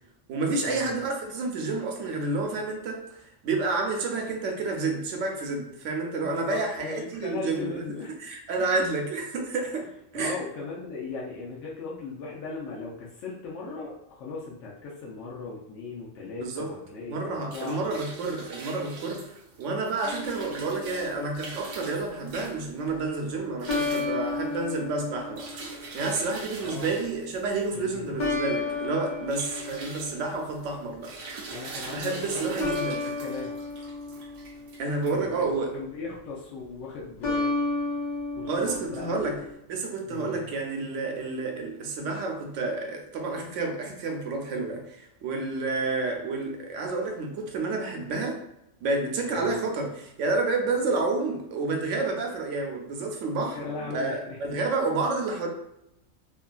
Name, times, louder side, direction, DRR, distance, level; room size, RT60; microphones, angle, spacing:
voice 1, 0.3-7.8 8.2-9.9 10.1-10.4 16.4-16.7 17.0-31.1 31.4-31.5 31.9-33.0 34.8-35.7 38.5-39.4 39.7-48.4 48.8-55.5, right 3 dB, 90° right, 1 dB, 0.9 m, -30 dB
voice 2, 6.1-8.2 8.6-8.9 10.1-18.0 26.6-26.9 27.7-28.1 31.5-32.5 32.8-33.5 35.1-37.5 38.4-39.4 40.1-40.5 49.3-49.5 53.5-54.6, left 4 dB, 85° left, -5 dB, 0.9 m, -38 dB
sound 1, 17.2-35.7, right 3 dB, 65° right, 0.7 m, -43 dB
sound 2, 20.0-21.4 23.7-26.1 28.2-30.8 32.6-35.1 37.2-39.5, left 3 dB, 45° left, 0.7 m, -32 dB
2.7 x 2.5 x 2.3 m, 0.84 s
omnidirectional pair, 1.2 m